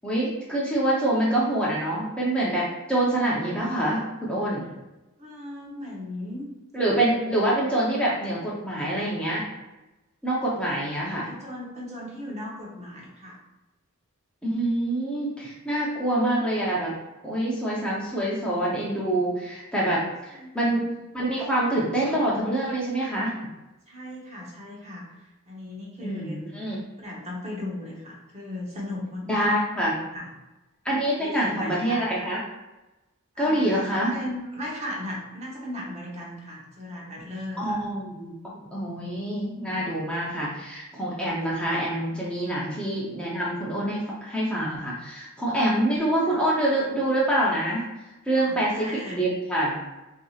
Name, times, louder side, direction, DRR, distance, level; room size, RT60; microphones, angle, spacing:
voice 1, 0.0-4.6 6.7-9.4 10.2-11.3 14.4-16.9 17.2-23.3 26.0-26.8 29.3-30.0 30.8-32.4 33.4-34.1 37.6-47.8 48.3-49.8, right 1 dB, 5° left, -6 dB, 0.7 m, -26 dB
voice 2, 5.2-6.5 10.7-10.8 11.3-13.4 20.3-20.8 23.9-26.4 27.0-29.5 30.1-30.3 31.2-32.1 33.3-37.8 42.4-42.6 45.5-45.6 46.2-46.4 48.3-49.3, left 1 dB, 30° right, -3 dB, 1.0 m, -37 dB
5.8 x 2.8 x 2.4 m, 1.0 s
head